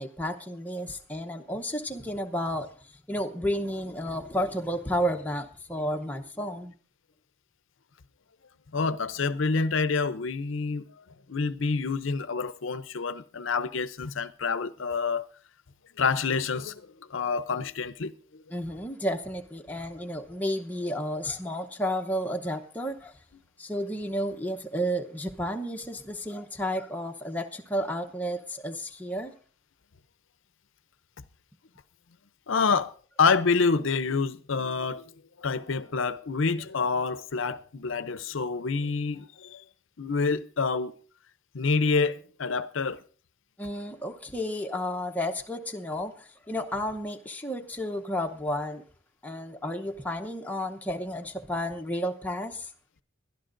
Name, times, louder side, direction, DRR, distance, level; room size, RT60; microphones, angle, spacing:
voice 1, 0.0-6.7 18.5-23.1 23.6-29.3 43.6-48.8 49.2-52.7, equal, 10° left, 0.8 m, -32 dB
voice 2, 8.7-15.2 16.0-18.4 32.5-32.9 33.2-35.1 35.4-39.6 40.0-40.9 41.5-43.0, left 4 dB, 65° left, 0.6 m, -27 dB
21.5 x 12.0 x 2.6 m
head